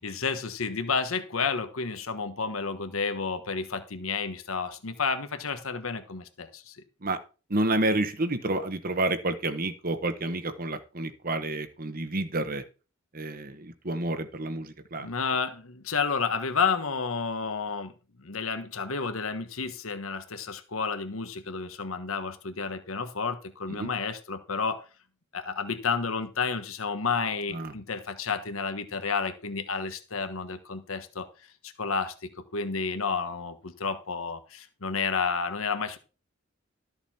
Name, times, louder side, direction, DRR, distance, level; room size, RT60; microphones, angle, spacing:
voice 1, 0.0-6.8 15.0-17.9 18.2-24.8 25.3-31.3 31.6-36.0, left 5 dB, 90° left, 8 dB, 1.4 m, -31 dB
voice 2, 7.5-12.6 13.1-15.1 23.7-23.9 27.5-27.7, right 2 dB, 45° right, 10 dB, 1.3 m, -29 dB
13.0 x 7.0 x 4.3 m, 0.34 s
head